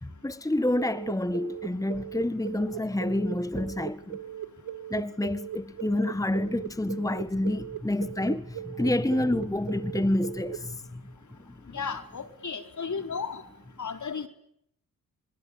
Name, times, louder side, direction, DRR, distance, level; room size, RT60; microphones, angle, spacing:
voice 1, 0.0-4.2 4.9-11.0, left 1 dB, 10° left, 1.6 m, -28 dB
sound 1, 0.8-10.6, right 11 dB, 90° right, 2.5 m, -38 dB
voice 2, 11.7-13.4 13.8-14.3, left 5 dB, 55° left, 4.5 m, -34 dB
27.5 x 23.0 x 8.7 m
cardioid pair, 55°, 34 cm